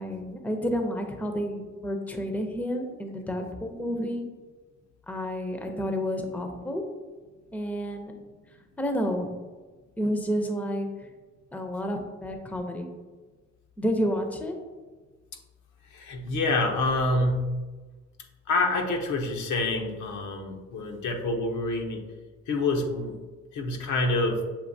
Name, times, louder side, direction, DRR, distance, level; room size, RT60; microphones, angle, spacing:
voice 1, 0.0-4.2 5.1-6.8 7.5-8.2 8.8-9.3 10.0-11.1 11.5-12.9 13.8-14.6, equal, 5° left, 4 dB, 0.5 m, -30 dB
voice 2, 15.9-17.5 18.5-22.0 22.5-23.2 23.5-24.4, left 2 dB, 80° left, 2 dB, 0.8 m, -27 dB
6.9 x 2.8 x 2.6 m, 1.3 s
cardioid pair, 90°, 30 cm